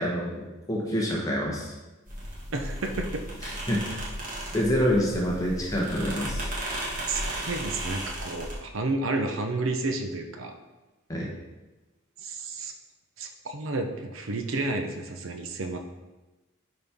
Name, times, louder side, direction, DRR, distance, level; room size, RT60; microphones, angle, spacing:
voice 1, 0.0-1.7 3.4-4.0 4.5-6.5 11.1-11.3, equal, 15° left, -3 dB, 1.2 m, -27 dB
sound 1, 2.1-8.5, right 1 dB, 40° right, 1.8 m, -35 dB
voice 2, 2.5-3.2 7.1-10.5 12.2-12.7 13.2-15.8, right 2 dB, 80° right, 5 dB, 0.7 m, -31 dB
10.5 x 4.3 x 3.6 m, 1.1 s
head